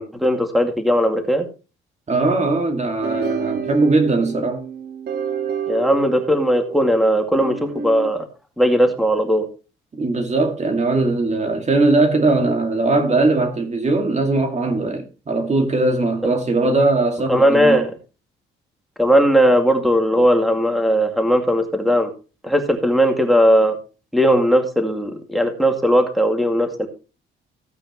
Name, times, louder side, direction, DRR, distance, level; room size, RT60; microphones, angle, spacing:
voice 1, 0.0-1.4 5.7-8.3 8.6-9.5 17.3-17.9 19.0-22.1 22.4-23.8 24.1-26.9, equal, ahead, 2.2 m, -18 dB
voice 2, 2.1-4.6 9.9-17.9, right 2 dB, 35° right, 2.2 m, -19 dB
sound 1, 3.0-8.1, right 7 dB, 55° right, 1.7 m, -29 dB
15.5 x 8.6 x 3.0 m
cardioid pair, 90°, 20 cm